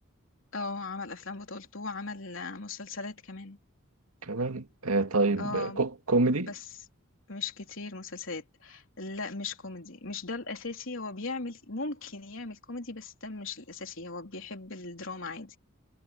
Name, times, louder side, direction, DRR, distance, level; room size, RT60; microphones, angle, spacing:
voice 1, 0.5-3.6 5.3-5.8 6.4-6.7 7.3-15.5, left 3 dB, 60° left, 3.8 m, -38 dB
voice 2, 4.2-6.5, right 3 dB, 90° right, 2.2 m, -27 dB
head